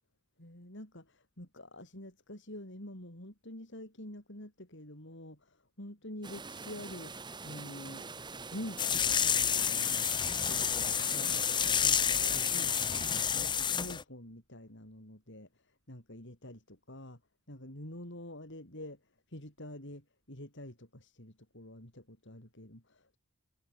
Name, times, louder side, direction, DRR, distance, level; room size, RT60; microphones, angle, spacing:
voice 1, 0.4-7.1 7.4-8.2 8.5-9.9 10.4-11.5 11.8-15.5 15.9-17.2 17.5-19.0 19.3-23.2, left 1 dB, 55° left, 6.7 m, -47 dB
sound 1, 6.2-13.3, right 4 dB, 20° right, 1.5 m, -45 dB
sound 2, 8.8-14.0, left 8 dB, 20° left, 0.6 m, -29 dB
head